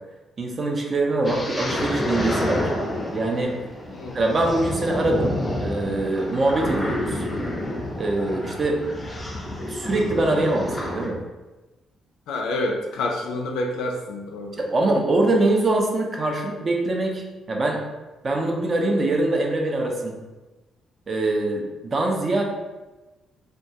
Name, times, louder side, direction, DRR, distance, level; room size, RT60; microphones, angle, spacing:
voice 1, 0.4-2.7 3.1-3.5 4.1-7.2 8.0-8.8 9.7-11.2 14.6-17.8 18.2-20.2 21.1-22.4, right 2 dB, 40° right, 1 dB, 0.4 m, -23 dB
sound 1, 1.2-11.1, left 1 dB, 20° left, 0.5 m, -29 dB
voice 2, 3.9-4.3 12.3-14.6, left 2 dB, 90° left, 2 dB, 0.4 m, -28 dB
2.2 x 2.1 x 2.7 m, 1.1 s
cardioid pair, 90°, 0 cm